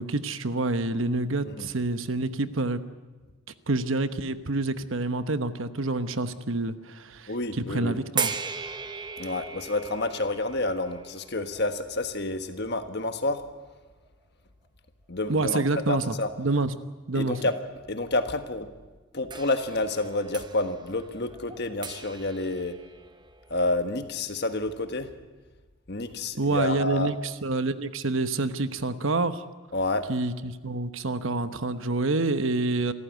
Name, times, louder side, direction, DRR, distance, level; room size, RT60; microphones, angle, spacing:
voice 1, 0.0-2.8 3.7-8.4 15.3-16.7 17.1-17.4 26.4-29.4 30.1-32.9, right 2 dB, 70° right, 11 dB, 1.1 m, -27 dB
voice 2, 7.3-8.0 9.2-13.4 15.1-16.3 17.1-17.5 17.9-18.7 19.1-22.8 23.5-25.1 25.9-27.1 29.7-30.1, left 2 dB, 50° left, 8 dB, 1.5 m, -29 dB
sound 1, 8.2-13.2 14.1-14.2 19.3-23.6, right 5 dB, 20° right, 0.8 m, -38 dB
26.5 x 14.0 x 9.4 m, 1.3 s
head